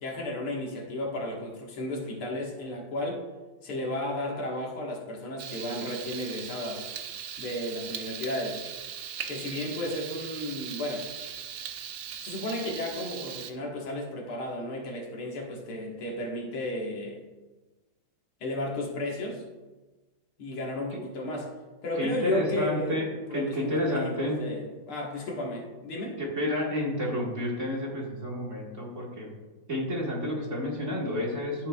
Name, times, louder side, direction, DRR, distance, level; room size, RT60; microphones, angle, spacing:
voice 1, 0.0-3.2 3.6-6.9 7.4-8.6 9.3-11.0 12.2-17.2 18.4-19.4 20.4-21.5 21.8-23.0 23.3-26.2, left 1 dB, 85° left, -1 dB, 2.5 m, -33 dB
Frying (food), 5.4-13.5, right 8 dB, 65° right, 1.1 m, -39 dB
voice 2, 21.9-24.4 26.2-29.3 29.7-31.7, left 1 dB, 35° right, -3 dB, 2.0 m, -30 dB
13.5 x 7.3 x 2.4 m, 1.2 s
omnidirectional pair, 2.3 m